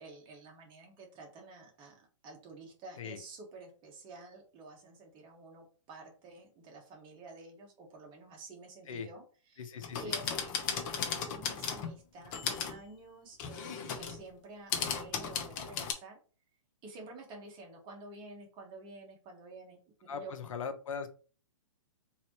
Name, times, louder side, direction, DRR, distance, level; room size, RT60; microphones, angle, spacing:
voice 1, 0.0-16.2 16.8-20.3, right 2 dB, 25° right, 1 dB, 1.4 m, -50 dB
voice 2, 9.6-10.1 20.1-21.1, left 6 dB, 70° left, 9 dB, 0.7 m, -40 dB
sound 1, 9.8-12.0 12.2-12.8 13.4-14.2 14.7-15.9, left 7 dB, 35° left, 0.8 m, -36 dB
3.9 x 2.9 x 3.0 m, 0.38 s
hypercardioid pair, 135°, 18 cm